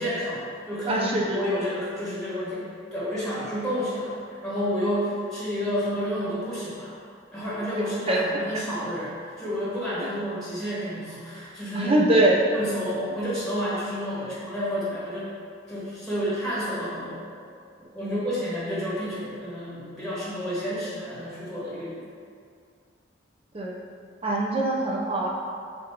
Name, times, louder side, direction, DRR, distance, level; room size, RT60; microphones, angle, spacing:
voice 1, 0.0-2.6 2.9-6.9 7.3-12.0 12.5-15.3 15.7-17.2 17.9-22.0, equal, ahead, -10 dB, 1.1 m, -30 dB
voice 2, 0.9-1.4 8.1-8.2 11.8-12.4 14.2-14.3 18.0-18.2 23.5-23.8 24.2-25.3, right 1 dB, 30° right, -3 dB, 0.6 m, -23 dB
6.8 x 2.6 x 2.9 m, 2.3 s
head